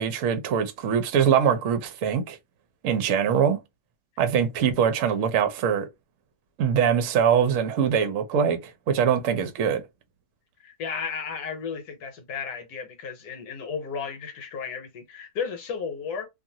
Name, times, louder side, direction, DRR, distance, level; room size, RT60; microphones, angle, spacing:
voice 1, 0.0-2.4 2.8-3.6 4.2-5.9 6.6-9.8, right 7 dB, 60° right, 0.9 m, -23 dB
voice 2, 10.6-16.3, left 6 dB, 70° left, 1.3 m, -34 dB
2.6 x 2.4 x 2.7 m
omnidirectional pair, 1.8 m